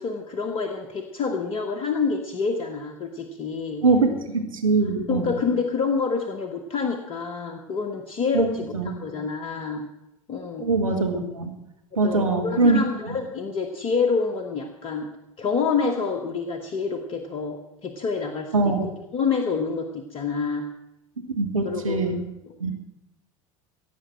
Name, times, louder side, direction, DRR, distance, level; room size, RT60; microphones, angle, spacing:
voice 1, 0.0-3.8 5.1-9.9 10.3-10.7 12.0-15.1 15.4-20.7 21.6-22.0 22.4-22.7, left 5 dB, 35° left, 4 dB, 1.4 m, -27 dB
voice 2, 3.8-5.3 8.3-8.5 8.7-8.9 10.6-11.5 12.0-12.8 13.1-13.2 18.5-18.9 21.3-22.3 22.6-22.7, right 3 dB, 75° right, 3 dB, 1.6 m, -22 dB
16.5 x 8.1 x 7.7 m, 0.87 s
figure-of-eight pair, 75°, 17 cm